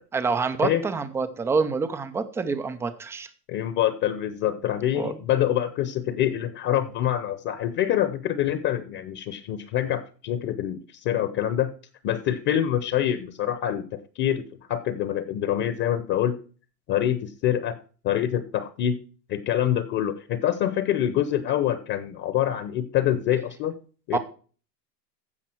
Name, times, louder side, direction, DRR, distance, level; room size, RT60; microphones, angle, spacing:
voice 1, 0.1-3.3 5.0-5.1 24.1-24.2, right 4 dB, 5° right, 10 dB, 0.4 m, -26 dB
voice 2, 3.5-11.7 12.0-16.4 16.9-17.8 18.0-19.0 19.3-23.7 24.1-24.2, left 11 dB, 35° left, 13 dB, 1.0 m, -25 dB
15.5 x 5.4 x 4.4 m, 0.39 s
hypercardioid pair, 120°, 50 cm